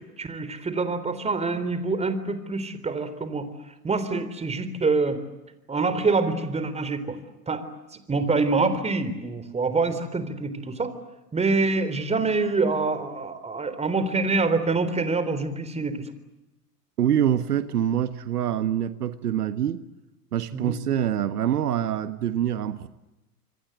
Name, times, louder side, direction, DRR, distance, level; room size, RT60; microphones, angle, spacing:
voice 1, 0.0-3.5 3.8-5.2 5.7-7.2 7.5-7.6 8.1-10.9 11.3-16.1 20.5-20.7, right 3 dB, 15° right, 12 dB, 3.7 m, -25 dB
voice 2, 17.0-19.8 20.3-22.9, right 10 dB, 75° right, 12 dB, 1.5 m, -25 dB
27.0 x 25.0 x 8.1 m, 0.97 s
hypercardioid pair, 100°, 47 cm